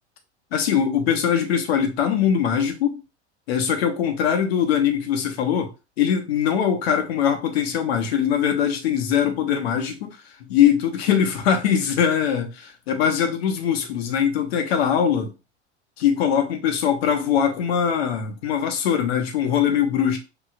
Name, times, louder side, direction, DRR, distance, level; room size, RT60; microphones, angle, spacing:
voice 1, 0.5-3.0 3.5-5.7 6.0-15.3 16.0-20.2, left 8 dB, 60° left, 0.9 m, -22 dB
4.9 x 2.7 x 2.5 m
figure-of-eight pair, 75°, 35 cm